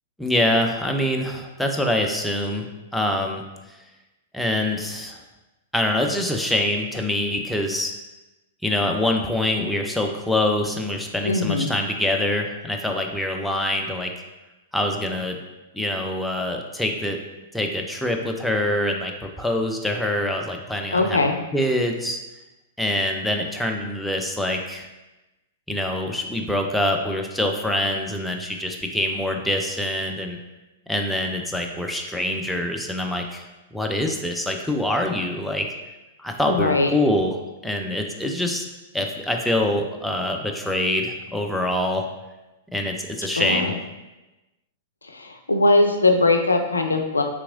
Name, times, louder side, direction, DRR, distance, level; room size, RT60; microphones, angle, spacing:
voice 1, 0.2-3.4 4.3-5.2 5.7-7.9 8.6-14.1 14.7-15.4 15.7-17.2 17.5-21.2 21.5-22.2 22.8-24.9 25.7-30.4 30.9-33.4 33.7-35.7 36.2-37.4 37.6-38.7 38.9-42.0 42.7-43.7, left 1 dB, 5° left, 2 dB, 0.4 m, -25 dB
voice 2, 11.2-11.7 20.9-21.4 36.5-36.9 43.3-43.8 45.0-47.2, left 2 dB, 85° left, 5 dB, 0.3 m, -20 dB
3.4 x 2.9 x 2.5 m, 1.1 s
figure-of-eight pair, 105°, 0 cm